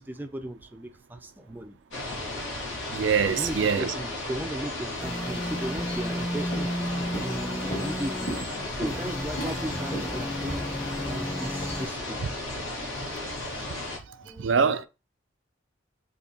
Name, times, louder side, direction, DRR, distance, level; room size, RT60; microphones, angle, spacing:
voice 1, 0.0-1.8 3.3-10.6 10.9-12.8 13.1-13.3 14.2-14.5, right 1 dB, 10° right, 0.4 m, -37 dB
sound 1, 1.9-14.0, left 2 dB, 80° left, 1.8 m, -34 dB
voice 2, 2.9-3.9 14.4-14.9, right 6 dB, 75° right, 0.4 m, -24 dB
sound 2, 5.0-8.5 8.8-11.9, equal, 15° left, 0.8 m, -34 dB
Walk footsteps, 6.2-6.3 6.5-6.8 7.1-11.7, right 1 dB, 45° left, 1.9 m, -37 dB
4.4 x 2.8 x 2.7 m
head